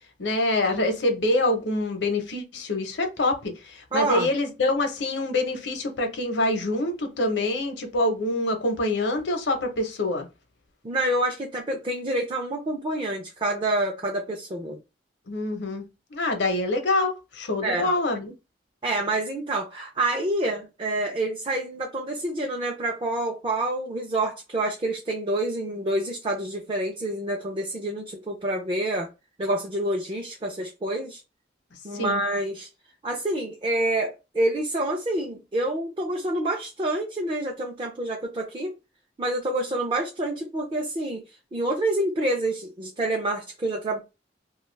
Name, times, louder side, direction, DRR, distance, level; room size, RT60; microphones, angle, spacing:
voice 1, 0.2-10.3 15.3-15.8 16.1-18.3 31.9-32.2, left 2 dB, 80° left, 0.7 m, -25 dB
voice 2, 3.9-4.3 10.8-14.8 17.6-17.9 18.8-29.1 29.4-31.2 31.8-32.7 33.0-38.7 39.2-41.2 41.5-44.0, right 1 dB, 30° right, 0.4 m, -27 dB
2.4 x 2.3 x 3.1 m
head